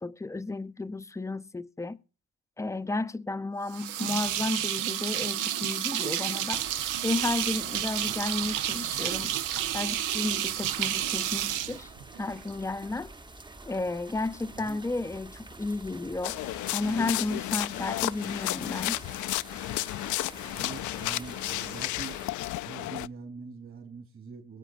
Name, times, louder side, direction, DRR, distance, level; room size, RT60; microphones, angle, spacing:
voice 1, 0.0-2.0 2.6-6.7 7.0-9.3 9.7-11.9 12.2-13.1 13.7-16.4 16.7-19.0, left 2 dB, 10° left, 0.6 m, -33 dB
sound 1, 3.7-12.5, right 11 dB, 85° right, 0.8 m, -30 dB
sound 2, 6.5-22.3, right 2 dB, 15° right, 0.9 m, -48 dB
sound 3, 16.2-23.1, left 17 dB, 75° left, 0.4 m, -32 dB
voice 2, 20.5-22.2 22.6-24.6, right 4 dB, 45° right, 3.5 m, -43 dB
22.5 x 8.3 x 2.5 m
cardioid pair, 90°, 30 cm